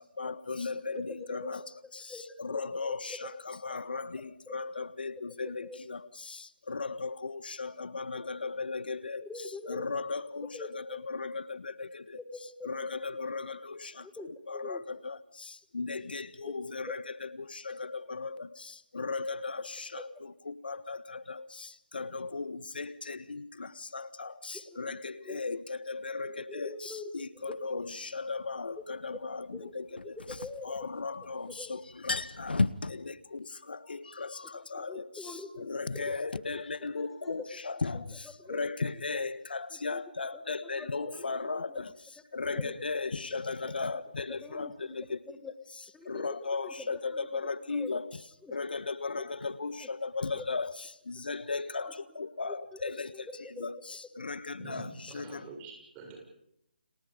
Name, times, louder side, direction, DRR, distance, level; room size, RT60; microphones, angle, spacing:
voice 1, 0.0-9.2 9.7-12.2 12.6-14.1 14.5-30.2 30.6-45.2 46.0-48.1 48.5-53.1 53.6-55.5, left 4 dB, 70° left, 14 dB, 1.5 m, -37 dB
voice 2, 1.6-3.2 4.5-4.6 5.6-5.8 9.2-10.0 10.5-11.0 12.2-13.0 14.0-14.8 16.4-16.5 24.7-25.4 26.2-27.7 29.5-30.7 31.5-31.7 34.8-35.8 36.9-37.5 38.4-38.6 39.2-39.3 39.7-40.0 40.3-41.8 42.5-42.7 43.6-43.7 44.4-44.9 45.3-45.5 45.9-48.0 48.4-48.6 50.4-50.5 51.8-51.9 52.4-53.7, left 3 dB, 5° left, 4 dB, 1.4 m, -45 dB
sound 1, 27.5-27.6 30.0-31.3 31.6-31.7 31.9-32.9, left 3 dB, 90° left, 1.3 m, -31 dB
voice 3, 54.6-56.2, right 3 dB, 20° right, 2 dB, 7.0 m, -46 dB
30.0 x 28.0 x 5.2 m, 0.78 s
figure-of-eight pair, 155°, 5 cm